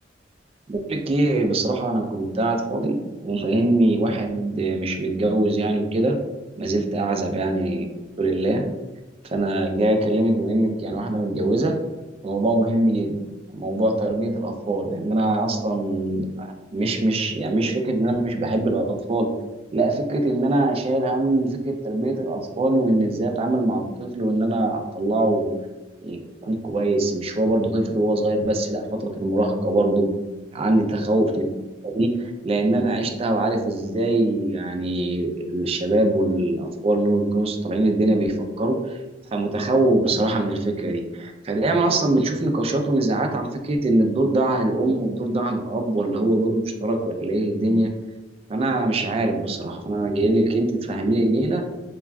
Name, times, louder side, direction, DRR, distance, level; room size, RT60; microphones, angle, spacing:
voice 1, 0.7-6.2 6.6-7.8 8.2-8.7 9.2-11.8 12.2-13.2 13.5-19.3 19.7-25.5 26.0-30.1 30.5-31.5 31.8-39.0 39.3-47.9 48.5-51.6, right 2 dB, 35° right, 4 dB, 0.3 m, -22 dB
2.3 x 2.2 x 3.4 m, 1.1 s
head